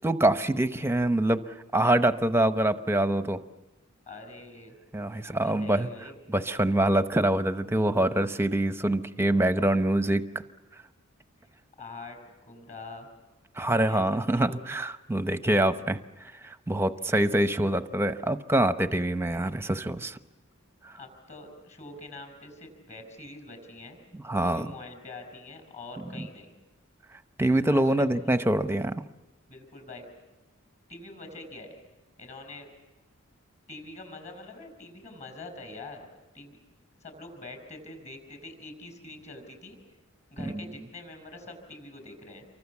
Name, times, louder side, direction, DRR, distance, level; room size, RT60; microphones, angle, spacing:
voice 1, 0.0-3.4 4.9-5.9 6.3-10.3 13.6-16.0 16.4-20.2 20.8-20.9 24.2-24.7 26.2-26.3 27.4-29.0 40.4-40.6, right 1 dB, 10° right, 10 dB, 0.8 m, -25 dB
voice 2, 4.1-4.8 5.2-6.1 11.8-12.2 12.5-13.1 13.8-14.6 21.0-24.0 24.4-26.5 27.7-28.4 29.5-30.1 30.9-31.7 32.2-32.7 33.7-36.1 36.3-36.6 37.0-39.8 40.3-42.5, left 2 dB, 35° left, 6 dB, 5.7 m, -44 dB
29.0 x 24.0 x 7.3 m, 1.1 s
head